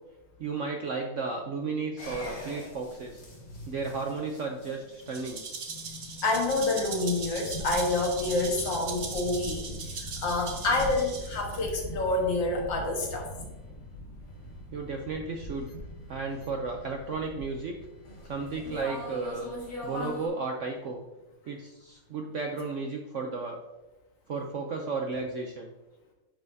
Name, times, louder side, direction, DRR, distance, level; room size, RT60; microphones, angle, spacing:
voice 1, 0.4-3.2 3.7-5.4 14.7-15.7 16.1-17.8 18.2-19.5 19.8-21.1 21.5-23.6 24.3-25.7, right 4 dB, 65° right, 3 dB, 0.7 m, -34 dB
sound 1, 2.0-20.3, equal, 50° left, 2.4 m, -42 dB
Rattle (instrument), 5.1-11.6, right 5 dB, 50° right, 1.0 m, -39 dB
voice 2, 5.8-13.3, left 2 dB, 85° left, 1 dB, 2.1 m, -28 dB
10.0 x 5.4 x 2.7 m, 1.0 s
omnidirectional pair, 2.0 m